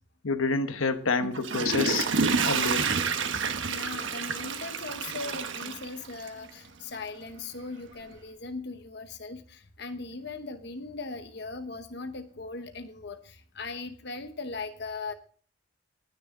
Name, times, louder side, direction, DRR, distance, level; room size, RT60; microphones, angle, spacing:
voice 1, 0.2-2.9, left 4 dB, 85° left, 9 dB, 1.0 m, -28 dB
Water / Toilet flush, 1.2-6.5 7.0-7.1, right 5 dB, 70° right, 1.2 m, -29 dB
voice 2, 3.7-15.1, left 3 dB, 55° left, 8 dB, 0.9 m, -39 dB
19.5 x 6.7 x 3.8 m, 0.44 s
head